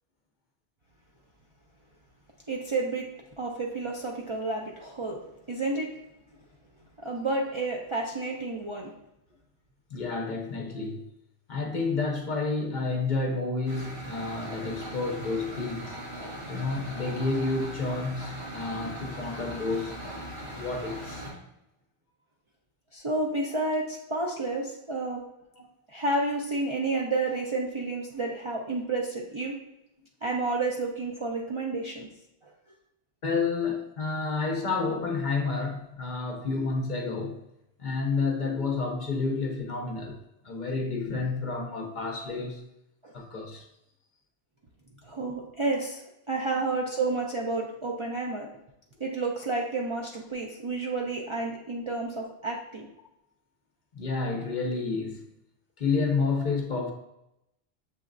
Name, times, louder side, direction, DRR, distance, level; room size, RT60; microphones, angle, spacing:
voice 1, 2.5-3.1 3.4-5.2 5.5-5.9 7.0-8.9 22.9-25.2 25.9-29.6 30.2-32.1 32.4-32.5 43.0-43.1 45.0-48.5 49.0-52.9, right 2 dB, 45° right, -2 dB, 0.4 m, -30 dB
voice 2, 9.9-11.1 11.5-16.0 16.5-20.0 20.6-21.3 24.2-24.3 25.6-25.7 33.2-37.4 37.8-42.7 43.1-43.6 53.9-55.2 55.8-56.9, left 4 dB, 55° left, 3 dB, 0.7 m, -30 dB
sound 1, 13.7-21.3, right 1 dB, 75° right, 1.7 m, -39 dB
6.9 x 3.0 x 2.5 m, 0.85 s
omnidirectional pair, 1.1 m